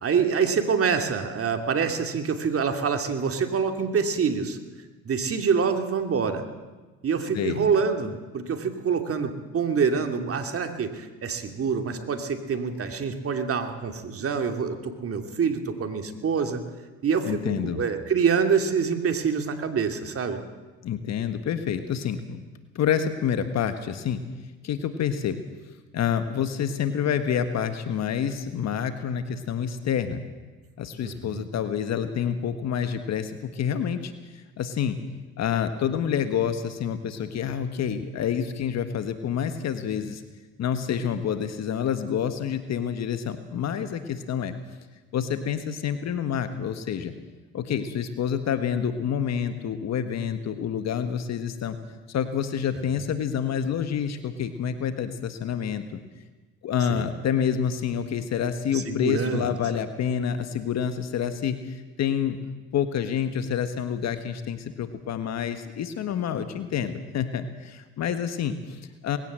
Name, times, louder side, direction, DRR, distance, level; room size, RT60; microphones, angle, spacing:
voice 1, 0.0-4.6 5.0-6.4 7.0-16.6 17.0-20.4 31.0-31.5 53.0-53.1 56.9-57.1 58.7-59.6, right 6 dB, 50° right, 6 dB, 2.7 m, -26 dB
voice 2, 17.2-17.8 20.8-22.4 22.7-24.2 24.6-25.4 25.9-30.2 30.8-35.0 35.4-40.2 40.6-44.5 45.1-47.1 47.5-51.8 52.1-56.0 56.6-62.4 62.7-69.2, left 8 dB, 60° left, 9 dB, 1.6 m, -28 dB
20.0 x 17.0 x 7.6 m, 1.3 s
supercardioid pair, 65°, 30 cm